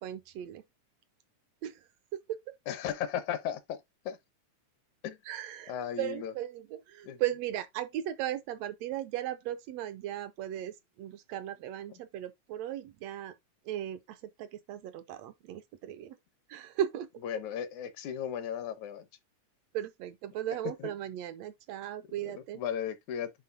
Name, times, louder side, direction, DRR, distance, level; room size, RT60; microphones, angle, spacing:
voice 1, 0.0-0.6 1.6-2.4 5.2-13.3 13.6-16.2 16.5-17.1 19.7-22.6, right 12 dB, 80° right, 1.6 m, -37 dB
voice 2, 2.7-3.8 4.1-4.2 5.0-5.2 5.7-6.3 7.0-7.2 17.2-19.1 20.8-20.9 22.2-23.3, left 9 dB, 75° left, 2.3 m, -35 dB
9.5 x 3.9 x 2.7 m
omnidirectional pair, 3.4 m